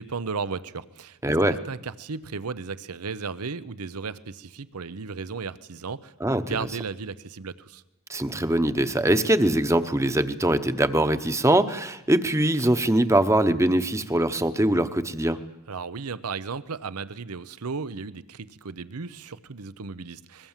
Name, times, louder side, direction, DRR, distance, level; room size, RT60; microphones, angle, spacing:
voice 1, 0.0-1.3 1.7-7.8 15.7-20.5, right 5 dB, 85° right, 16 dB, 0.8 m, -35 dB
voice 2, 1.2-1.6 6.2-6.6 8.1-15.4, right 1 dB, 15° right, 11 dB, 0.9 m, -22 dB
24.0 x 21.5 x 7.4 m, 0.95 s
head